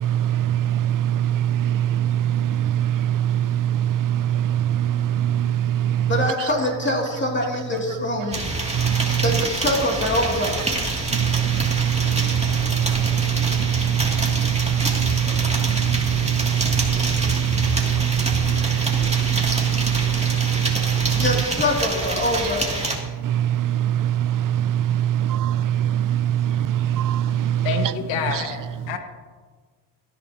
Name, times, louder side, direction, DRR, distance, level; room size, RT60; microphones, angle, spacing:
voice 1, 0.0-6.1 8.7-9.2 11.1-21.2 23.2-27.7 28.3-28.4, right 11 dB, 50° right, 0.6 m, -22 dB
voice 2, 6.1-8.4 9.2-10.7 21.1-22.8, left 1 dB, 25° left, 2.6 m, -24 dB
sound 1, 8.3-23.0, right 1 dB, 15° right, 2.5 m, -27 dB
voice 3, 27.6-29.0, left 6 dB, 85° left, 1.7 m, -28 dB
18.0 x 11.0 x 2.9 m
cardioid pair, 70°, 44 cm